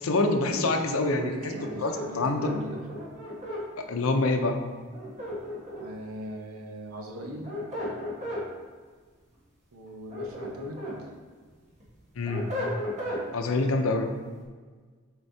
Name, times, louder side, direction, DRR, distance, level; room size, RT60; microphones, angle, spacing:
voice 1, 0.0-1.3 1.8-2.5 3.8-4.6 12.2-12.5 13.3-14.1, left 2 dB, 80° left, 5 dB, 0.6 m, -26 dB
voice 2, 1.1-2.9 5.8-7.6 9.7-11.2, equal, 85° right, 1 dB, 1.0 m, -39 dB
sound 1, 1.5-3.6 4.9-6.0 7.2-8.4 9.9-11.0 11.4-13.2, left 1 dB, 35° right, 1.4 m, -35 dB
7.7 x 4.3 x 2.8 m, 1.5 s
head